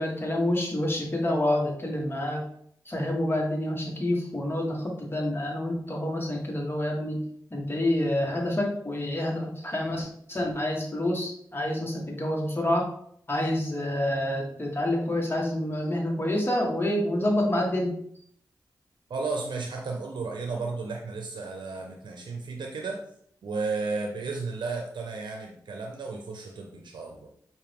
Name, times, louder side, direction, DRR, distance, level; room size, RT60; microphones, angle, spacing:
voice 1, 0.0-2.4 2.9-7.2 7.5-12.9 13.3-18.0, left 1 dB, 30° left, 0 dB, 1.6 m, -28 dB
voice 2, 19.1-23.0 23.4-27.3, right 4 dB, 75° right, 1 dB, 0.6 m, -33 dB
5.7 x 2.6 x 3.5 m, 0.65 s
cardioid pair, 45°, 8 cm